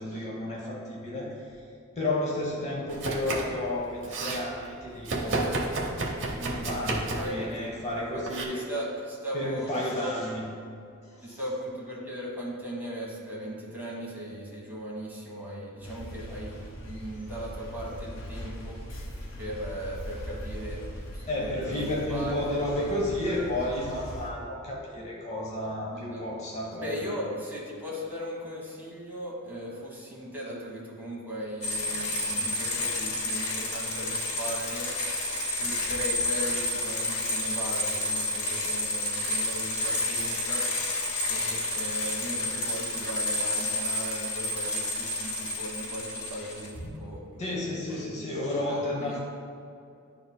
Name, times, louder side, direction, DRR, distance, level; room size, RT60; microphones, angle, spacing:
voice 1, 0.0-1.6 2.0-5.6 6.4-8.7 9.3-10.5 11.0-11.4 21.3-27.1 47.4-49.2, left 1 dB, 30° left, -3 dB, 0.7 m, -32 dB
Domestic sounds home sounds, 2.9-3.6 3.9-4.4 5.0-7.4 8.2-8.4, right 2 dB, 60° right, 0.8 m, -31 dB
voice 2, 7.1-7.7 8.1-9.7 10.0-10.3 11.2-16.5 16.8-18.8 19.4-22.4 22.7-22.9 23.2-23.4 25.9-26.2 26.8-34.9 35.4-40.6 41.3-48.3 48.7-49.2, equal, 10° right, -5 dB, 1.3 m, -38 dB
sound 1, 15.8-24.3, equal, 65° left, 1.4 m, -40 dB
sound 2, 31.6-46.9, left 1 dB, 85° left, 1.1 m, -30 dB
10.5 x 4.0 x 2.2 m, 2.5 s
head